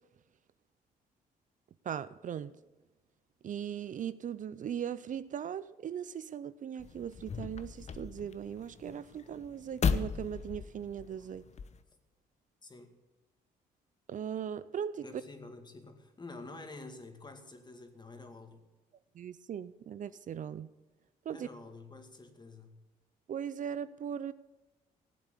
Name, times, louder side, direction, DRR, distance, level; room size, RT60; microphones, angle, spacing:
voice 1, 1.9-2.5 3.4-11.4 14.1-15.0 19.2-20.7 21.3-21.4 23.3-24.3, right 8 dB, 50° right, 15 dB, 0.5 m, -39 dB
sound 1, 6.8-11.8, left 6 dB, 45° left, 0.9 m, -36 dB
voice 2, 12.6-13.0 15.0-18.6 21.3-22.8, left 3 dB, 25° left, 6 dB, 2.3 m, -49 dB
16.0 x 8.0 x 8.4 m, 1.1 s
cardioid pair, 80°, 16 cm